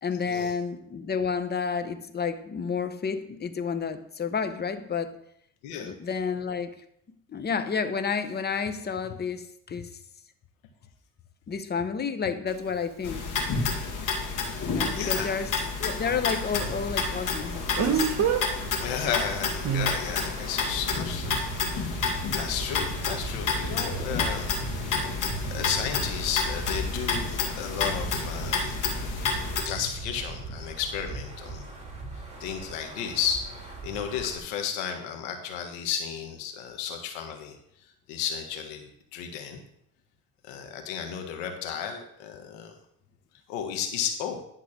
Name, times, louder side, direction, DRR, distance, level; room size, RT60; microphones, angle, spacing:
voice 1, 0.0-5.2 5.8-6.8 7.3-9.9 11.5-13.4 14.7-18.4, left 6 dB, 30° left, 0.9 m, -30 dB
Speech, 12.5-12.6 17.8-18.4 19.6-19.9, right 7 dB, 50° right, 1.2 m, -24 dB
sound 1, 13.0-29.6, left 5 dB, 60° left, 2.1 m, -30 dB
voice 2, 14.9-15.3 18.8-21.4 21.7-24.5 25.5-28.8 29.6-31.7 32.4-33.4 33.8-37.5 38.1-39.6 40.5-42.7 43.5-44.4, left 8 dB, 85° left, 1.7 m, -33 dB
Wind, 15.9-34.4, right 3 dB, 20° right, 3.0 m, -38 dB
11.5 x 3.9 x 6.6 m
supercardioid pair, 95°, 34 cm